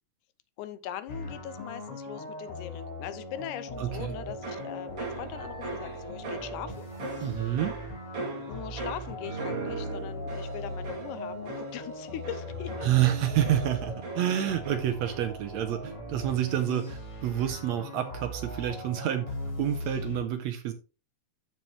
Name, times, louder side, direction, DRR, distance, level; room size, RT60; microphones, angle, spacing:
voice 1, 0.6-6.9 8.5-12.9, left 11 dB, 80° left, 2.1 m, -41 dB
sound 1, 1.1-20.2, left 1 dB, 25° left, 2.4 m, -40 dB
voice 2, 3.8-4.2 7.2-7.8 12.8-19.3 19.6-20.7, right 11 dB, 75° right, 1.8 m, -28 dB
sound 2, 3.9-15.5 15.8-16.3, right 3 dB, 50° right, 3.3 m, -40 dB
13.0 x 4.6 x 3.1 m
omnidirectional pair, 3.6 m